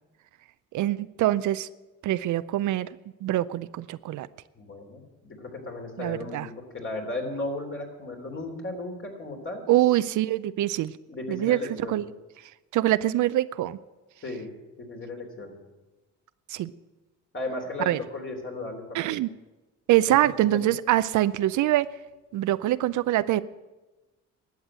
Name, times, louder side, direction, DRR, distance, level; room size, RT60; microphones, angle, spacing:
voice 1, 0.7-1.7 2.0-2.9 3.2-4.3 6.0-6.5 9.7-10.9 11.3-11.6 11.9-12.0 12.7-13.8 16.5-16.7 17.9-18.0 18.9-19.3 19.9-21.9 22.3-23.4, right 14 dB, 75° right, 15 dB, 0.5 m, -24 dB
voice 2, 4.5-9.6 11.1-12.0 14.2-14.5 14.8-15.5 17.3-19.1 20.1-20.2 20.5-20.6, left 2 dB, 40° left, 2 dB, 3.4 m, -35 dB
12.0 x 8.0 x 9.0 m, 1.1 s
cardioid pair, 90°, 30 cm